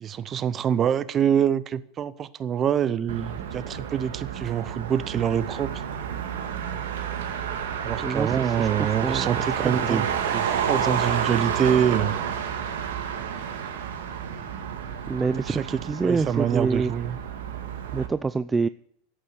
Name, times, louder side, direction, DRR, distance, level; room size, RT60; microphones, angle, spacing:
voice 1, 0.0-5.8 7.8-12.2 15.5-15.6 16.0-17.2, right 9 dB, 35° right, 17 dB, 0.8 m, -25 dB
Motor vehicle (road), 3.1-18.1, right 8 dB, 75° right, 2.0 m, -30 dB
voice 2, 8.0-8.7 9.0-10.1 15.1-16.9 17.9-18.7, right 4 dB, 15° right, 13 dB, 0.4 m, -27 dB
11.5 x 8.5 x 8.1 m, 0.69 s
hypercardioid pair, 100°, 0 cm